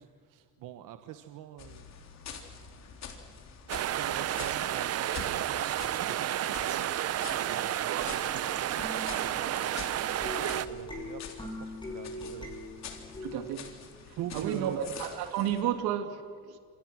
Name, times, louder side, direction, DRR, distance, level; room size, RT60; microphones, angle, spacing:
voice 1, 0.0-1.8 3.8-13.2 14.2-14.9, right 11 dB, 60° right, 1.2 m, -45 dB
sound 1, 1.6-15.6, left 6 dB, 45° left, 3.6 m, -47 dB
sound 2, 3.7-10.7, right 11 dB, 45° right, 0.8 m, -31 dB
sound 3, 8.0-13.4, left 1 dB, 10° left, 6.2 m, -42 dB
voice 2, 13.2-13.7 14.3-16.6, right 10 dB, 85° right, 2.5 m, -32 dB
28.0 x 26.0 x 6.2 m
cardioid pair, 145°, 36 cm